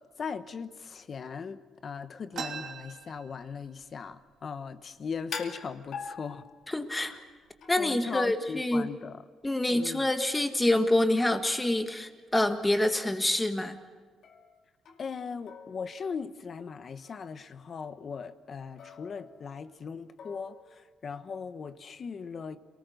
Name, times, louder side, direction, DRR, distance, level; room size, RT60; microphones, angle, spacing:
voice 1, 0.0-6.5 7.0-7.2 7.8-9.2 9.7-10.1 15.0-22.6, left 5 dB, 40° left, 1.1 m, -39 dB
sound 1, 2.3-3.9 4.3-4.4 4.6-5.3 5.9-6.0 6.7-6.9 7.4-7.8, right 6 dB, 55° right, 2.8 m, -41 dB
sound 2, 5.3-6.9 7.6-8.0 12.0-12.1 12.6-12.9 14.2-15.2 15.5-16.5 17.0-17.2 18.8-19.8 20.2-20.9, left 6 dB, 60° left, 2.3 m, -45 dB
voice 2, 6.7-7.1 7.7-8.9 9.4-13.8, left 1 dB, 10° left, 1.7 m, -26 dB
27.0 x 19.5 x 6.6 m
cardioid pair, 120°, 0 cm